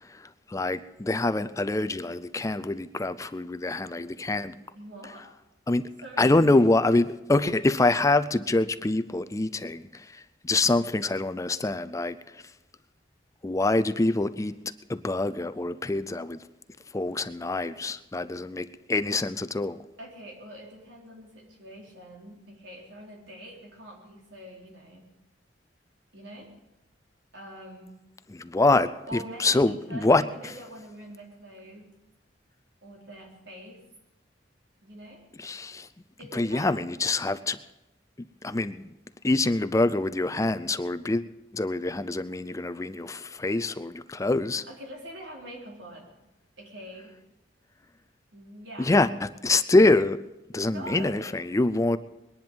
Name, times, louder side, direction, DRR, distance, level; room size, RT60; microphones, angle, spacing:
voice 1, 0.5-4.6 5.7-5.9 6.2-12.2 13.4-14.5 14.9-16.4 16.9-19.8 28.3-30.2 35.4-35.9 36.3-37.6 38.4-38.8 39.2-41.2 41.5-44.6 48.8-49.1 49.4-50.2 50.5-52.0, left 2 dB, 15° left, 14 dB, 0.4 m, -25 dB
voice 2, 4.7-5.3 6.0-6.7 20.0-25.1 26.1-26.5 27.3-28.0 29.1-31.9 32.8-33.8 34.8-35.3 36.2-36.9 44.7-46.2 46.6-47.2 48.3-48.9 50.6-51.4, right 1 dB, 80° right, -1 dB, 4.0 m, -44 dB
21.5 x 10.5 x 5.4 m, 0.95 s
head